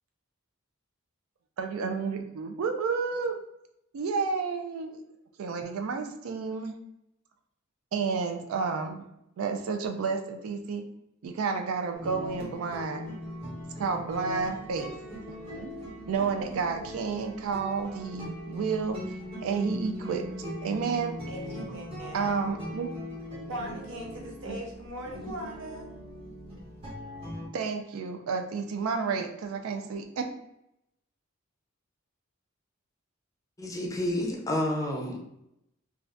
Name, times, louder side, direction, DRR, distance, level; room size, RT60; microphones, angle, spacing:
voice 1, 1.6-3.4 3.9-5.0 5.4-6.8 7.9-9.0 9.4-10.8 11.2-13.2 13.8-15.7 16.1-19.0 19.4-20.2 20.6-21.2 22.1-22.9 23.3-23.8 27.5-30.3, right 5 dB, 90° right, 5 dB, 0.4 m, -31 dB
sound 1, 11.9-27.5, equal, 25° right, 1.0 m, -40 dB
voice 2, 21.3-22.5 23.5-25.9, equal, 65° right, 1 dB, 0.7 m, -40 dB
voice 3, 33.6-35.2, left 1 dB, 15° left, 0 dB, 0.5 m, -29 dB
2.5 x 2.3 x 3.3 m, 0.82 s
head